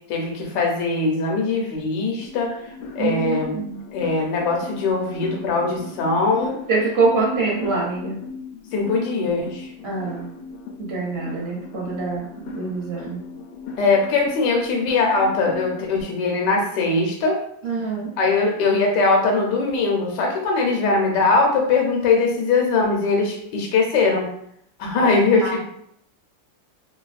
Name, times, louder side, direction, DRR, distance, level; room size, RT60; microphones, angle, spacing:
voice 1, 0.1-2.5 3.0-3.6 3.9-6.6 8.7-9.7 13.8-17.4 18.2-24.3 24.8-25.6, left 3 dB, 70° left, 0 dB, 1.3 m, -21 dB
sound 1, 2.2-16.0, left 5 dB, 90° left, 1.3 m, -38 dB
voice 2, 3.0-3.7 6.7-8.2 9.8-10.3 10.9-13.2 17.6-18.1 25.0-25.5, right 4 dB, 60° right, -4 dB, 0.6 m, -25 dB
3.4 x 2.7 x 2.4 m, 0.70 s
omnidirectional pair, 2.1 m